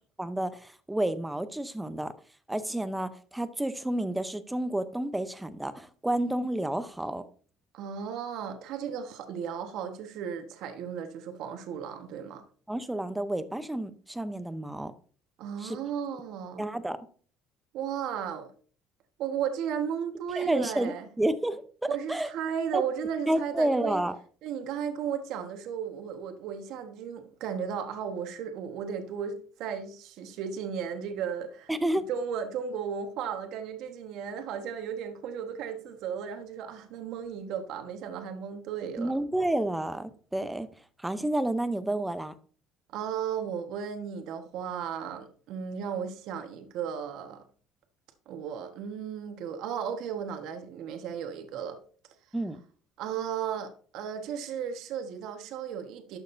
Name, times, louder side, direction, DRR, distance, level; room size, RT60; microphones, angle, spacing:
voice 1, 0.2-2.1 2.5-7.2 12.7-14.9 15.6-15.8 16.6-17.1 20.4-21.6 22.1-22.3 22.7-22.8 23.3-24.2 31.7-32.1 39.0-40.7 41.0-42.3 52.3-52.6, right 1 dB, 5° right, 0.7 m, -30 dB
voice 2, 7.7-12.4 15.4-16.6 17.7-18.5 19.2-21.1 21.9-24.0 24.4-31.7 32.1-39.1 42.9-47.4 48.3-51.8 53.0-56.2, right 8 dB, 65° right, 1.3 m, -35 dB
12.0 x 6.4 x 2.6 m
cardioid pair, 125°, 0 cm